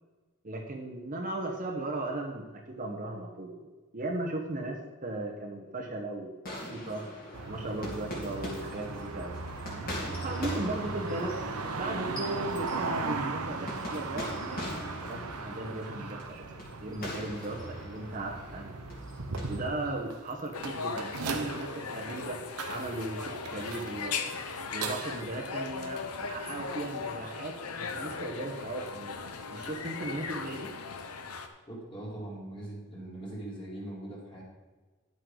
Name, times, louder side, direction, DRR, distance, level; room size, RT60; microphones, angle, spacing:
voice 1, 0.4-3.6 3.9-7.0 7.5-11.4 11.7-14.7 15.0-16.4 16.8-19.0 19.5-22.4 22.7-24.3 24.7-29.2 29.5-30.7, right 2 dB, 40° right, 0 dB, 1.1 m, -37 dB
sound 1, 6.4-19.6, left 1 dB, 40° left, 2.9 m, -42 dB
sound 2, 7.3-25.2, right 4 dB, 90° right, 1.0 m, -38 dB
sound 3, 20.5-31.5, left 5 dB, 85° left, 0.9 m, -38 dB
voice 2, 31.7-34.4, right 1 dB, 25° left, -4 dB, 2.9 m, -41 dB
11.0 x 8.0 x 3.9 m, 1.3 s
head